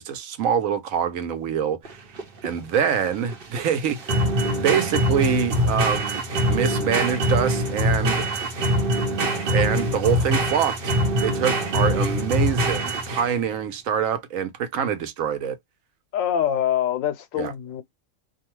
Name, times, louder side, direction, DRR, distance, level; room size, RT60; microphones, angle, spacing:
voice 1, 0.0-2.0 2.4-4.2 4.6-8.2 9.5-10.9 11.2-15.6 17.4-17.5, right 8 dB, 90° right, 1.1 m, -25 dB
sound 1, 1.8-13.5, equal, 50° right, 1.0 m, -23 dB
voice 2, 16.1-17.8, left 10 dB, 85° left, 1.0 m, -24 dB
2.6 x 2.3 x 2.9 m
omnidirectional pair, 1.3 m